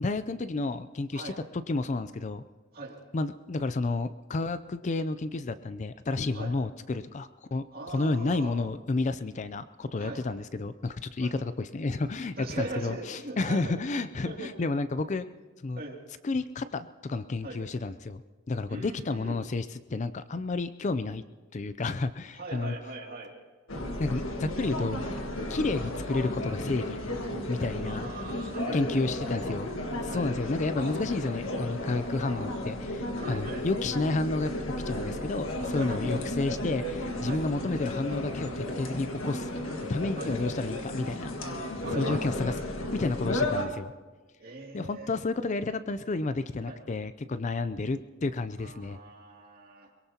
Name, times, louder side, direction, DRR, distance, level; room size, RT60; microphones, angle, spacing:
voice 1, 0.0-1.3 1.7-2.4 3.1-15.3 15.6-15.8 16.2-18.2 18.5-19.7 19.9-21.2 21.5-22.8 24.0-25.0 25.5-27.0 27.5-28.1 28.7-29.7 30.0-34.5 34.9-39.5 39.9-41.3 41.9-42.5 42.9-43.9 44.7-49.0, left 3 dB, 35° left, 12 dB, 0.4 m, -31 dB
voice 2, 7.7-8.6 10.0-10.3 11.2-11.3 12.4-13.8 14.2-14.5 15.8-16.0 17.4-17.6 18.7-19.4 22.3-23.3 27.8-29.6 30.1-30.3 33.1-33.7 35.6-36.1 37.2-37.4 40.1-40.3 41.8-42.2 44.4-45.2 46.6-46.8 48.6-49.9, right 2 dB, 45° right, -1 dB, 2.6 m, -41 dB
sound 1, 23.7-43.7, left 1 dB, 70° left, 1.6 m, -34 dB
23.0 x 22.0 x 2.9 m, 1.3 s
head